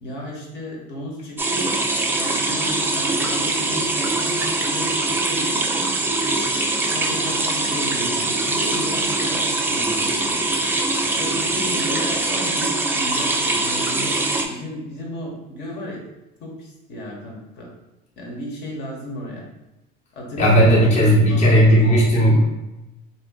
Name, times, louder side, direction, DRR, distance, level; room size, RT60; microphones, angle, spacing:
voice 1, 0.0-1.7 2.2-5.9 6.9-10.4 11.2-16.0 16.4-17.7 18.2-19.4 20.1-21.8, left 1 dB, 60° left, -2 dB, 1.0 m, -34 dB
sound 1, 1.4-14.5, right 2 dB, 10° right, 0.4 m, -22 dB
voice 2, 20.4-22.5, equal, 35° left, -5 dB, 0.8 m, -15 dB
2.7 x 2.5 x 3.6 m, 0.97 s
supercardioid pair, 110°, 20 cm